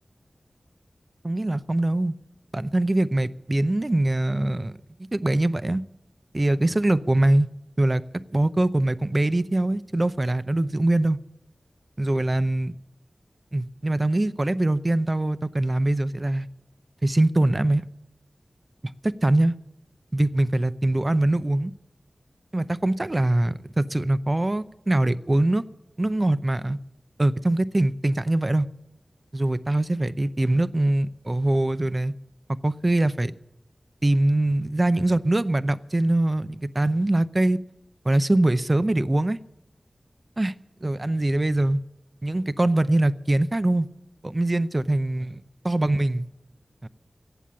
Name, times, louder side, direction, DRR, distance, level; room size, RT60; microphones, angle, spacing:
voice 1, 1.2-2.1 2.5-4.7 5.1-5.8 6.3-7.5 7.8-8.0 8.3-11.2 12.0-12.7 13.5-16.5 17.0-17.8 19.0-19.5 20.1-21.7 22.5-25.6 26.0-26.8 27.2-28.7 29.3-32.1 32.6-33.3 34.0-37.6 38.1-39.4 40.4-40.5 40.8-41.8 42.2-43.9 44.2-45.4 45.6-46.3 46.8-46.9, right 1 dB, 30° right, 0.6 m, -23 dB
15.0 x 8.6 x 9.5 m
wide cardioid pair, 70°, 0 cm